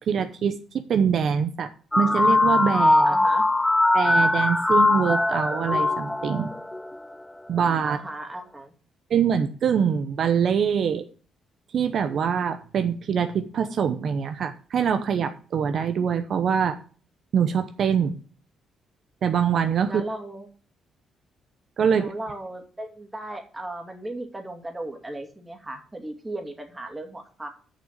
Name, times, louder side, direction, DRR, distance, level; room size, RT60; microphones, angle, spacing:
voice 1, 0.0-1.7 2.0-3.2 3.9-6.5 7.5-8.0 9.1-11.0 11.7-16.8 17.3-18.2 19.2-20.0 21.8-22.1, right 7 dB, 60° right, 8 dB, 0.8 m, -24 dB
sound 1, 1.9-7.0, left 2 dB, 10° left, 0.6 m, -21 dB
voice 2, 3.0-3.5 7.8-8.7 19.9-20.5 21.9-27.5, right 1 dB, 15° right, 4 dB, 2.3 m, -36 dB
6.9 x 6.1 x 7.5 m, 0.41 s
cardioid pair, 90°, 0 cm